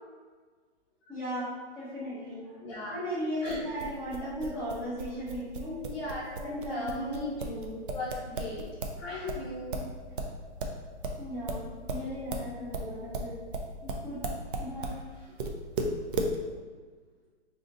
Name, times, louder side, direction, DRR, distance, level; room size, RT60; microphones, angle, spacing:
voice 1, 1.1-2.4 2.7-5.8 6.4-7.3 9.1-9.4 11.2-13.3 13.8-14.2 14.6-15.0, equal, 5° right, -10 dB, 0.7 m, -37 dB
voice 2, 2.6-3.0 3.4-3.7 5.9-8.7 9.0-9.9, left 2 dB, 25° left, -9 dB, 0.6 m, -37 dB
sound 1, 3.5-9.0 9.3-15.0 15.4-16.4, right 2 dB, 50° right, 0.5 m, -35 dB
2.8 x 2.5 x 3.8 m, 1.4 s
hypercardioid pair, 150°, 35 cm